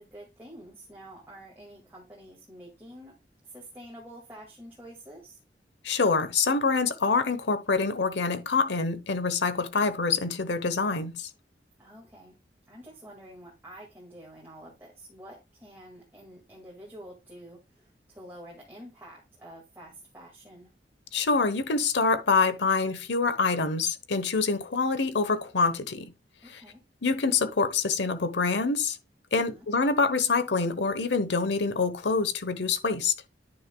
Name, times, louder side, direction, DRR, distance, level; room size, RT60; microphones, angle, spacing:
voice 1, 0.0-3.2 3.4-5.4 11.8-12.4 12.7-20.7 26.4-26.8 29.3-29.7, right 1 dB, 10° right, 1.9 m, -48 dB
voice 2, 5.8-11.3 21.1-26.1 26.5-26.6 27.0-29.0 29.3-33.1, left 4 dB, 75° left, 1.0 m, -26 dB
9.7 x 6.4 x 2.2 m
head